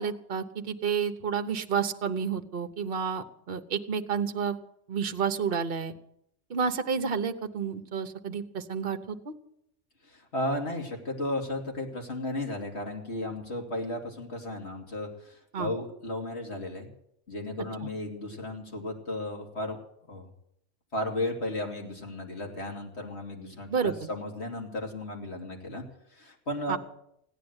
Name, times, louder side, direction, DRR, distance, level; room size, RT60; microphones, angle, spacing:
voice 1, 0.0-4.6 4.9-5.9 6.5-9.3 15.5-15.7 17.8-17.9 23.7-24.1 26.7-26.8, right 6 dB, 50° right, 8 dB, 1.2 m, -30 dB
voice 2, 10.1-16.9 17.3-19.8 20.1-20.3 20.9-25.8 26.1-26.8, left 1 dB, 60° left, 1 dB, 3.1 m, -34 dB
16.5 x 10.0 x 8.0 m, 0.73 s
omnidirectional pair, 1.2 m